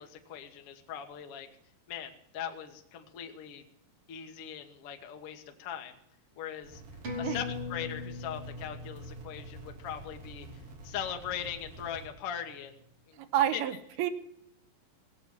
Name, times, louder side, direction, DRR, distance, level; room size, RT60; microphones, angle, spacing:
voice 1, 0.0-1.5 1.9-3.6 4.1-5.9 6.4-6.8 7.2-10.5 10.8-13.2 13.5-13.6, left 9 dB, 65° left, 5 dB, 1.4 m, -40 dB
sound 1, 6.6-12.1, right 2 dB, 60° right, 4.3 m, -49 dB
sound 2, 7.0-12.0 12.3-12.4, left 3 dB, 35° right, 3.3 m, -41 dB
voice 2, 13.2-14.1, right 11 dB, 80° right, 10 dB, 2.9 m, -29 dB
18.0 x 8.0 x 7.2 m, 0.75 s
omnidirectional pair, 4.7 m